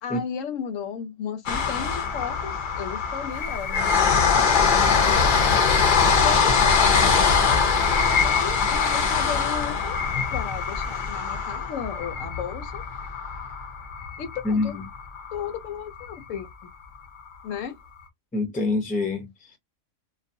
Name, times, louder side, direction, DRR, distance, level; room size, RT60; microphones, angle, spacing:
voice 1, 0.0-5.3 6.0-6.5 7.2-7.6 8.0-10.0 10.3-12.8 14.2-14.7 15.3-16.7 17.4-17.8, left 8 dB, 85° left, 1.0 m, -35 dB
sound 1, 1.5-15.6 16.0-16.1 16.4-16.5, left 5 dB, 55° left, 0.6 m, -22 dB
voice 2, 14.4-14.9 18.3-19.6, left 3 dB, 10° left, 0.4 m, -26 dB
2.3 x 2.2 x 2.6 m
omnidirectional pair, 1.3 m